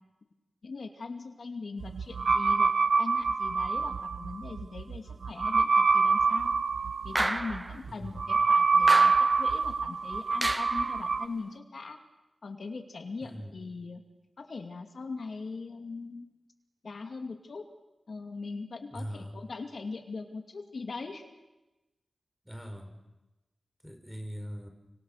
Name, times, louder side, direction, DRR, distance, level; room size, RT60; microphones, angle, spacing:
voice 1, 0.6-2.7 3.0-6.6 7.0-12.0 12.4-14.0 14.4-16.3 16.8-17.6 18.1-21.4, left 4 dB, 65° left, 4 dB, 2.5 m, -40 dB
sound 1, 1.8-11.3, right 4 dB, 80° right, 1.5 m, -26 dB
sound 2, 7.1-7.8 8.9-9.5 10.4-10.9, right 1 dB, 20° right, 0.9 m, -31 dB
voice 2, 7.9-8.3 13.2-13.6 18.9-19.3 22.4-22.9 23.8-24.7, equal, ahead, 5 dB, 4.6 m, -41 dB
29.5 x 25.5 x 6.7 m, 1.0 s
wide cardioid pair, 125°, 0 cm